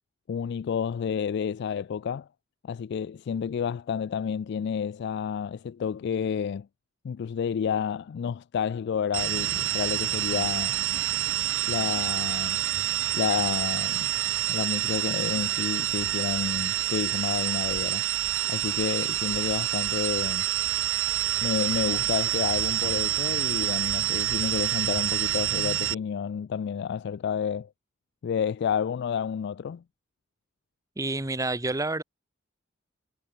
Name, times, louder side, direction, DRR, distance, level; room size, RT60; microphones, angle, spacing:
voice 1, 0.3-2.3 2.6-6.7 7.0-10.8 11.7-12.6 13.1-14.1 14.5-18.1 18.5-20.5 21.4-27.7 28.2-29.8, left 7 dB, 60° left, 0.3 m, -30 dB
sound 1, 9.1-25.9, right 12 dB, 70° right, 1.4 m, -27 dB
voice 2, 31.0-32.0, right 2 dB, 15° right, 1.0 m, -28 dB
head